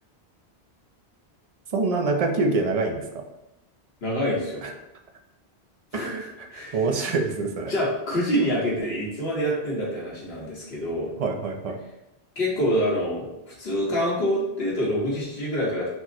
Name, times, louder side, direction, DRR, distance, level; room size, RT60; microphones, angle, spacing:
voice 1, 1.7-3.2 4.6-4.7 5.9-7.7 11.2-11.8, right 3 dB, 45° right, 3 dB, 0.5 m, -26 dB
voice 2, 4.0-4.6 5.9-6.1 6.5-6.8 7.7-11.1 12.3-15.9, equal, 70° left, -5 dB, 1.6 m, -26 dB
4.4 x 2.1 x 4.3 m, 0.92 s
omnidirectional pair, 1.1 m